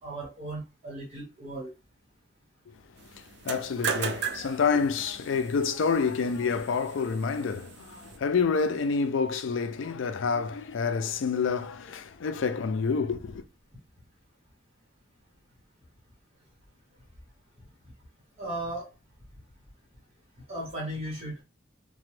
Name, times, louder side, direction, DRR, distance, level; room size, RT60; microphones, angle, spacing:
voice 1, 0.0-1.7 18.4-18.9 20.5-21.4, right 1 dB, 30° right, 1.0 m, -36 dB
voice 2, 3.2-13.4, left 5 dB, 75° left, 0.4 m, -28 dB
sound 1, 3.3-8.2, right 6 dB, 60° right, 0.4 m, -37 dB
2.9 x 2.1 x 3.1 m
head